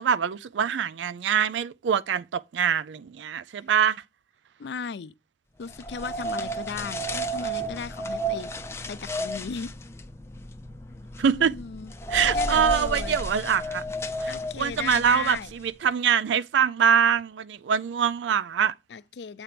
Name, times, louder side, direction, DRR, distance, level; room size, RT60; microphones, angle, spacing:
voice 1, 0.0-4.0 11.2-11.6 12.1-13.8 14.2-18.7, right 7 dB, 85° right, 0.4 m, -24 dB
voice 2, 4.6-5.1 5.6-8.5 8.9-9.7 11.3-11.9 12.3-13.2 14.3-15.5 18.9-19.4, left 5 dB, 70° left, 0.4 m, -36 dB
sound 1, 5.7-15.7, right 1 dB, 15° left, 0.6 m, -32 dB
8.0 x 3.3 x 5.8 m
head